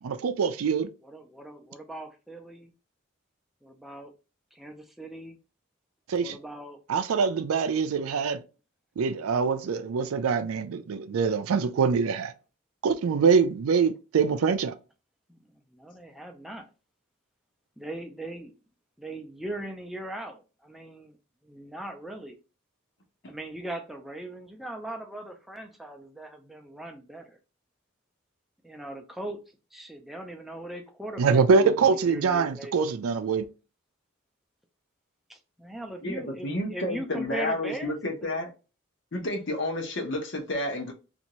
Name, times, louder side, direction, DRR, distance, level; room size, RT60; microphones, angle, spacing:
voice 1, 0.0-0.9 6.1-6.4 6.9-8.4 9.0-12.3 12.8-14.7 31.2-33.5, right 5 dB, 80° right, 0.4 m, -24 dB
voice 2, 1.0-2.7 3.6-4.1 4.5-5.4 6.2-6.8 15.3-15.4 15.7-16.6 17.8-18.5 19.0-21.2 21.4-22.4 23.3-27.4 28.6-29.4 29.7-32.7 35.3-37.9, right 1 dB, ahead, 0.4 m, -39 dB
voice 3, 36.0-38.5 39.1-40.9, left 1 dB, 60° left, 0.8 m, -30 dB
2.7 x 2.5 x 3.0 m
head